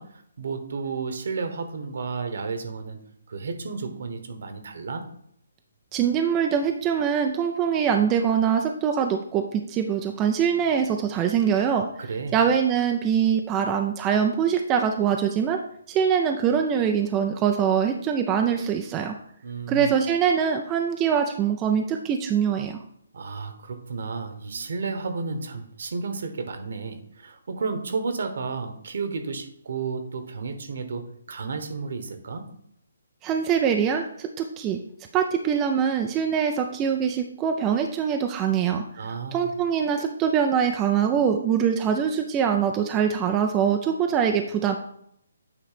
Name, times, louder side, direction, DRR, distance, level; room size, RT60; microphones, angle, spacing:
voice 1, 0.0-3.0 3.3-5.0 12.0-12.4 19.4-19.9 23.1-32.5 39.0-39.5, right 4 dB, 65° right, 8 dB, 1.2 m, -32 dB
voice 2, 5.9-11.9 12.3-15.6 15.9-19.1 19.7-22.8 33.2-34.8 35.1-38.8 39.3-44.8, right 7 dB, 20° right, 4 dB, 0.4 m, -23 dB
8.6 x 3.2 x 5.0 m, 0.70 s
hypercardioid pair, 155°, 0 cm